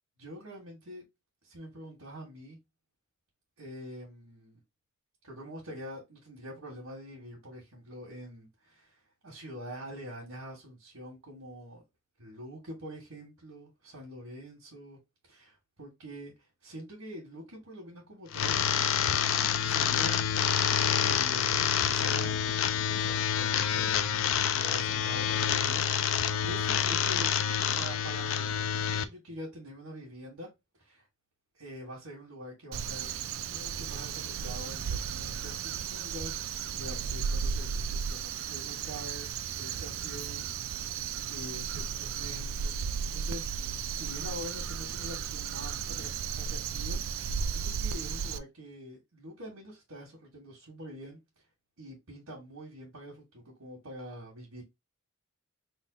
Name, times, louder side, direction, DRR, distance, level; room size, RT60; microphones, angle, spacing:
voice 1, 0.2-1.0 1.4-2.6 3.6-4.6 5.2-9.0 9.2-11.8 12.2-15.0 15.3-16.3 16.6-18.6 19.6-20.3 21.0-25.8 26.1-27.3 27.8-30.5 30.8-31.0 31.6-39.3 39.5-41.0 41.3-42.8 43.1-46.1 46.4-51.2 51.8-54.6, equal, 90° right, 1.6 m, -45 dB
sound 1, 18.3-29.0, left 8 dB, 70° left, 0.4 m, -27 dB
Crow, 32.7-48.4, right 7 dB, 70° right, 0.4 m, -34 dB
3.7 x 2.3 x 3.8 m
head